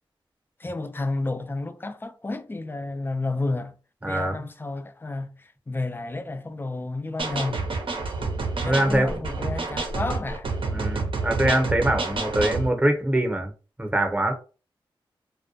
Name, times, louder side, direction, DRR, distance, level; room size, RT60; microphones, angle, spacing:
voice 1, 0.6-3.8 4.1-7.7 8.6-10.5, left 2 dB, 25° left, 0.4 m, -31 dB
voice 2, 4.0-4.4 8.6-9.2 10.7-13.5 13.8-14.3, right 1 dB, 15° right, 0.7 m, -23 dB
sound 1, 7.2-12.7, right 3 dB, 65° right, 0.7 m, -28 dB
2.2 x 2.2 x 2.6 m
cardioid pair, 55°, 9 cm